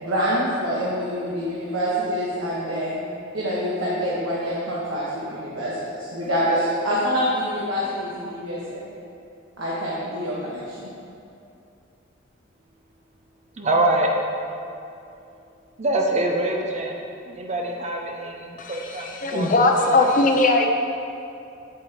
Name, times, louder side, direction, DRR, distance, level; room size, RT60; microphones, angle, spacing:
voice 1, 0.0-3.0 3.3-8.9 9.6-10.9, equal, 80° right, -7 dB, 1.3 m, -26 dB
voice 2, 13.6-14.1 15.8-17.0 17.3-20.1, right 1 dB, 35° right, 1 dB, 0.6 m, -25 dB
voice 3, 18.6-20.7, left 2 dB, 40° left, 3 dB, 0.7 m, -20 dB
8.3 x 8.2 x 3.0 m, 2.6 s
head